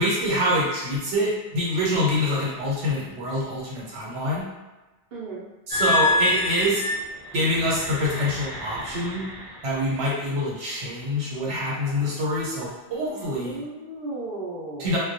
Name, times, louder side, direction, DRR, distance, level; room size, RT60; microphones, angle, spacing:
voice 1, 0.0-4.5 5.7-6.8 7.3-9.3 9.6-13.6 14.8-15.0, equal, 80° right, -5 dB, 1.1 m, -25 dB
voice 2, 5.1-5.5 13.1-14.9, right 2 dB, 65° right, -6 dB, 0.8 m, -35 dB
sound 1, 5.7-10.2 10.9-11.1 11.7-12.0, left 2 dB, 35° left, 0.7 m, -28 dB
2.2 x 2.1 x 2.6 m, 1.1 s
omnidirectional pair, 1.2 m